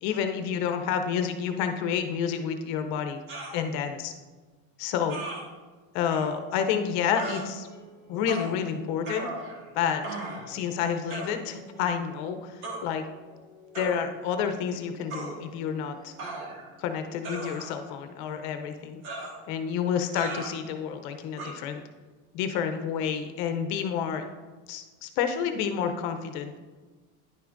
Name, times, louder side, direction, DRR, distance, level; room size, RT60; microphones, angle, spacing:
voice 1, 0.0-3.2 3.5-4.1 4.8-5.2 5.9-7.7 8.1-9.3 9.7-10.0 10.5-13.0 13.7-16.1 16.8-19.0 19.5-21.8 22.3-24.3 24.7-26.6, left 7 dB, 55° left, 7 dB, 0.7 m, -29 dB
sound 1, 3.3-3.6 5.1-5.4 6.1-6.3 7.1-7.4 8.3-8.5 9.0-9.7 10.0-10.5 11.1-11.4 12.6-12.8 13.7-14.0 15.1-15.3 16.2-16.7 17.2-17.9 19.0-19.4 20.1-20.5 21.4-21.5, right 2 dB, 70° right, 1.7 m, -37 dB
sound 2, 6.7-17.0, equal, 20° right, 1.6 m, -55 dB
10.5 x 6.0 x 2.5 m, 1.4 s
supercardioid pair, 145°, 42 cm